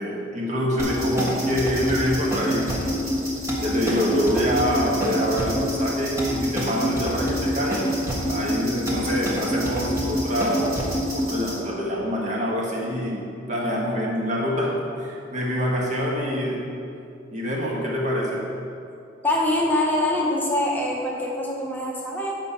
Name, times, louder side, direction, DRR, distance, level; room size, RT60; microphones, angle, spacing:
voice 1, 0.0-3.2 3.6-7.9 8.3-10.8 11.1-16.7 17.3-18.5, equal, 40° right, -2 dB, 1.5 m, -26 dB
sound 1, 0.8-11.6, equal, 15° right, 1.4 m, -26 dB
voice 2, 19.2-22.3, left 1 dB, 10° left, -3 dB, 0.8 m, -24 dB
8.0 x 5.4 x 5.7 m, 2.5 s
head